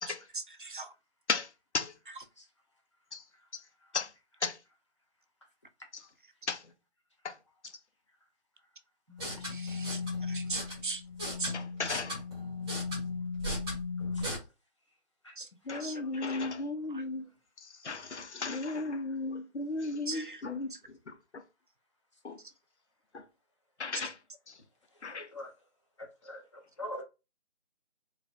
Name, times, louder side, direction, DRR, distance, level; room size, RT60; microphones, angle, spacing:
voice 1, 1.3-1.9 3.1-3.3 3.5-3.6 3.9-4.1 4.4-4.6 5.9-6.0 6.5-6.7 7.2-7.4 7.6-7.8 11.5-12.2 15.6-17.3 17.6-21.4 22.2-22.4 23.1-23.3 23.8-24.2 24.5-24.6 25.0-25.3, left 3 dB, 80° left, 0.7 m, -36 dB
sound 1, 9.1-14.4, left 3 dB, 5° right, 0.9 m, -36 dB
voice 2, 9.5-10.0 10.3-11.0 11.4-11.5 15.4-15.5 15.7-16.0 20.1-20.4, right 3 dB, 50° right, 0.5 m, -39 dB
voice 3, 24.9-25.5 26.0-27.0, left 1 dB, 25° left, 0.8 m, -45 dB
3.9 x 2.2 x 2.5 m
figure-of-eight pair, 160°, 34 cm